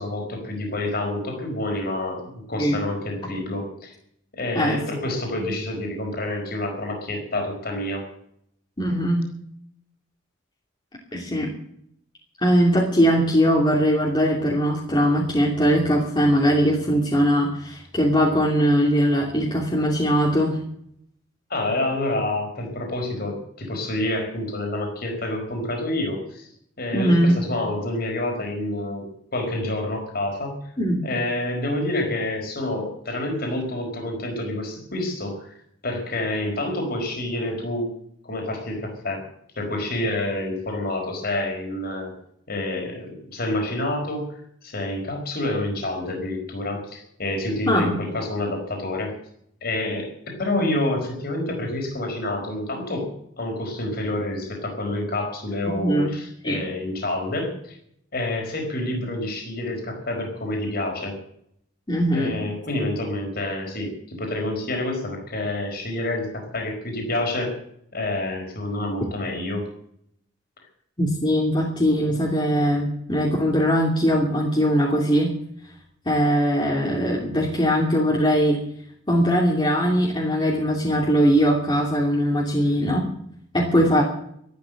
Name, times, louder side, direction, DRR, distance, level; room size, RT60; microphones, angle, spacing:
voice 1, 0.0-3.9 4.3-8.0 21.5-26.5 26.8-30.6 31.0-35.5 35.8-37.9 38.2-39.2 39.6-42.1 42.5-49.1 49.6-53.1 53.4-57.8 58.1-61.1 62.1-67.5 67.9-69.7, left 1 dB, 50° left, 2 dB, 4.7 m, -28 dB
voice 2, 8.8-9.3 11.1-11.5 12.4-20.6 26.9-27.4 30.8-31.0 47.7-48.0 55.7-56.1 56.4-56.6 61.9-62.3 71.0-75.3 76.0-78.6 79.1-83.1 83.5-84.0, equal, 25° left, -3 dB, 2.8 m, -20 dB
13.0 x 12.5 x 7.8 m, 0.69 s
head